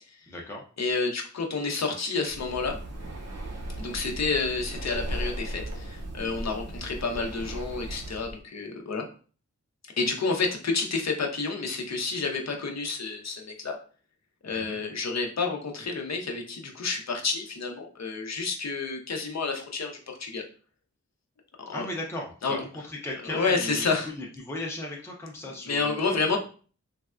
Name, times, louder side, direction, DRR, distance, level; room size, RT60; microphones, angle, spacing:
voice 1, 0.3-0.6 6.7-6.9 14.5-14.8 21.7-26.3, left 1 dB, 10° left, -1 dB, 0.5 m, -37 dB
voice 2, 0.8-2.8 3.8-9.1 10.0-13.8 14.4-20.4 21.7-21.9 22.4-22.6 23.3-24.1 25.7-26.4, left 4 dB, 65° left, 2 dB, 0.6 m, -29 dB
Breathing, 2.2-8.4, right 1 dB, 60° right, 0.6 m, -37 dB
3.4 x 2.1 x 2.3 m, 0.39 s
wide cardioid pair, 95°, 30 cm